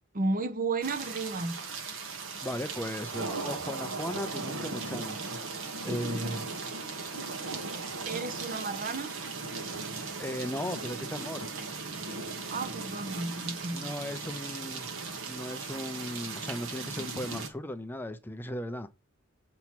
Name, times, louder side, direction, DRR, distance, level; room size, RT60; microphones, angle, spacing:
voice 1, 0.1-1.6 8.1-9.1 12.5-13.9, right 3 dB, 40° right, 0.8 m, -33 dB
sound 1, 0.8-17.5, right 4 dB, 65° right, 1.1 m, -37 dB
voice 2, 2.4-5.2 5.8-6.5 9.6-9.8 10.2-11.5 13.7-14.9 15.3-18.9, left 1 dB, 10° left, 0.5 m, -37 dB
7.1 x 3.0 x 5.9 m
head